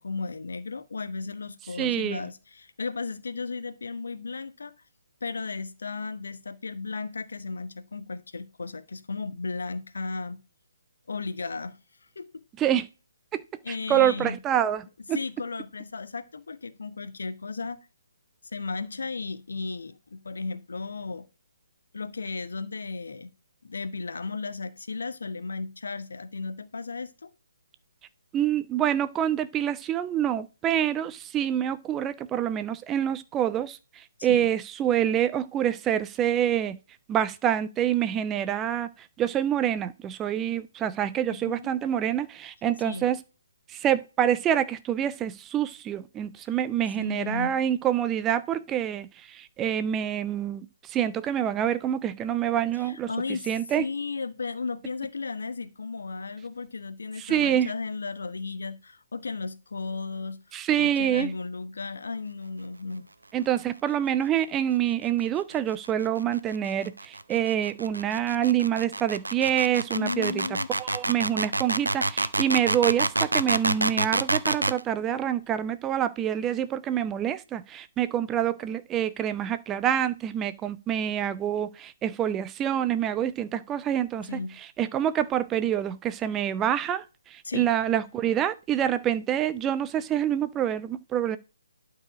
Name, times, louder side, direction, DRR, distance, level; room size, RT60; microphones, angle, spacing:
voice 1, 0.0-4.7 5.2-10.4 11.1-11.8 12.1-12.4 13.6-14.4 15.1-17.9 18.5-21.2 21.9-23.3 23.6-27.3 34.3-34.5 41.3-41.7 42.8-43.1 47.0-47.5 52.8-53.5 53.8-60.4 60.8-63.0 69.9-70.7 84.3-84.5 87.4-87.7, left 4 dB, 60° left, 1.1 m, -35 dB
voice 2, 1.7-2.3 12.6-12.9 13.3-13.4 13.7-15.2 28.3-36.8 37.1-43.2 43.7-53.8 57.2-57.7 60.5-61.3 63.3-70.4 70.8-91.4, right 10 dB, 15° right, 0.4 m, -26 dB
sound 1, 65.5-74.8, right 2 dB, 75° right, 0.7 m, -27 dB
12.0 x 4.8 x 4.9 m
figure-of-eight pair, 140°, 0 cm